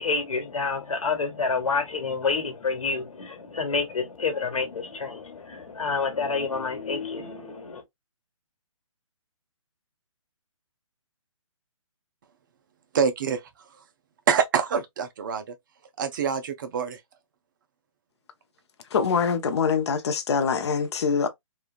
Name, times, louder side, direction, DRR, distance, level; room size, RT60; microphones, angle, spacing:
voice 1, 0.0-7.8, left 4 dB, 75° left, 1.3 m, -28 dB
voice 2, 12.9-13.4 14.3-15.4 16.0-17.0, right 6 dB, 40° right, 0.5 m, -25 dB
voice 3, 18.9-21.3, left 6 dB, 50° left, 0.6 m, -24 dB
3.1 x 2.3 x 2.3 m
hypercardioid pair, 150°, 17 cm